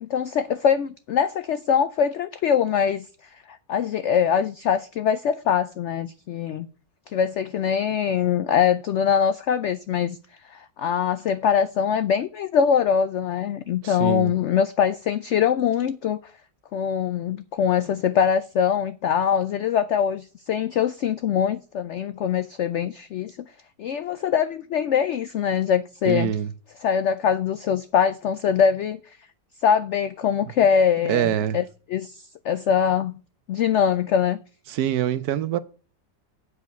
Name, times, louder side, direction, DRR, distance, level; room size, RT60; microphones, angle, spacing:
voice 1, 0.0-3.1 3.7-6.7 7.1-10.2 10.5-16.2 16.7-23.4 23.8-26.3 26.8-29.0 29.6-31.6 31.9-33.1 33.5-34.4, left 8 dB, 80° left, 0.6 m, -23 dB
voice 2, 13.8-14.3 26.1-26.5 31.1-31.6 34.7-35.6, right 11 dB, 70° right, 1.1 m, -24 dB
8.3 x 4.9 x 6.6 m
omnidirectional pair, 1.8 m